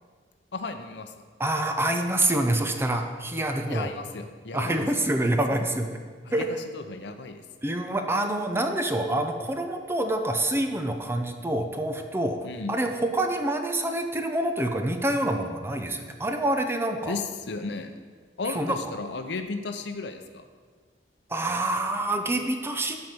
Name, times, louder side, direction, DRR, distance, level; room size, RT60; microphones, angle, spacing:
voice 1, 0.5-1.1 3.7-4.9 6.2-7.4 12.4-12.7 17.1-17.9 18.4-20.4, left 3 dB, 70° left, 7 dB, 0.7 m, -34 dB
voice 2, 1.4-3.9 4.5-6.0 6.3-6.5 7.6-12.4 12.7-17.2 18.5-18.8 21.3-23.0, right 1 dB, 15° right, 5 dB, 0.7 m, -26 dB
13.0 x 4.6 x 5.3 m, 1.6 s
head